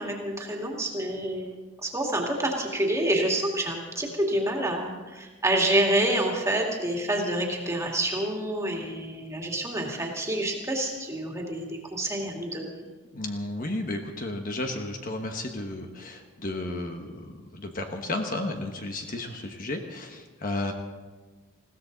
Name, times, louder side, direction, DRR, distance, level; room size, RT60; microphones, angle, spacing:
voice 1, 0.0-1.5 1.8-12.9, right 1 dB, 15° right, 0 dB, 2.3 m, -28 dB
voice 2, 13.1-20.7, left 2 dB, 40° left, 4 dB, 1.2 m, -33 dB
20.5 x 16.0 x 4.0 m, 1.3 s
head